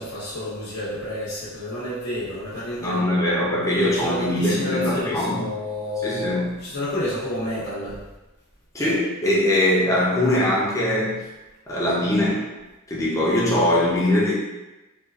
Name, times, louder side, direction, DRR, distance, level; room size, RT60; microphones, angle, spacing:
voice 1, 0.0-3.1 3.7-8.0, left 1 dB, 65° left, -11 dB, 0.7 m, -30 dB
voice 2, 2.8-5.5 6.0-6.6 8.7-11.2 11.7-12.5 12.9-14.3, left 1 dB, 15° left, -5 dB, 0.5 m, -21 dB
2.6 x 2.3 x 2.3 m, 1.1 s
head